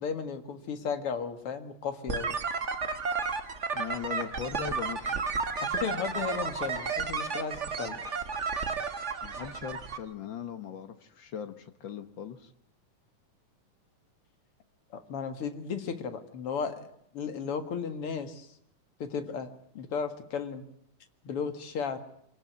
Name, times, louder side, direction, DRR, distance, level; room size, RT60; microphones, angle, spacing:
voice 1, 0.0-2.4 5.6-8.0 14.9-16.8 17.1-18.5 19.0-20.6 21.2-22.0, left 6 dB, 50° left, 8 dB, 2.3 m, -35 dB
sound 1, 2.1-10.0, right 5 dB, 55° right, 0.7 m, -32 dB
voice 2, 3.7-5.2 9.2-12.5, left 8 dB, 90° left, 8 dB, 1.0 m, -39 dB
25.0 x 18.5 x 9.4 m, 0.74 s
omnidirectional pair, 3.9 m